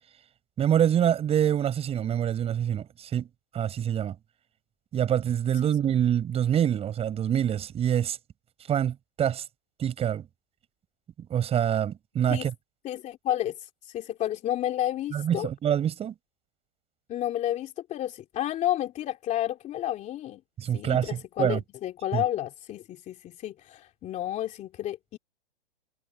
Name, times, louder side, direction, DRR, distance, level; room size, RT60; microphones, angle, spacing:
voice 1, 0.6-3.3 3.5-4.2 4.9-8.2 8.7-9.4 9.8-10.3 11.3-12.5 15.1-16.1 20.6-21.6 22.1-22.2, right 9 dB, 20° right, 7.3 m, -25 dB
voice 2, 12.8-15.5 17.1-20.4 20.7-25.2, left 12 dB, 25° left, 2.9 m, -31 dB
hypercardioid pair, 135°, 30 cm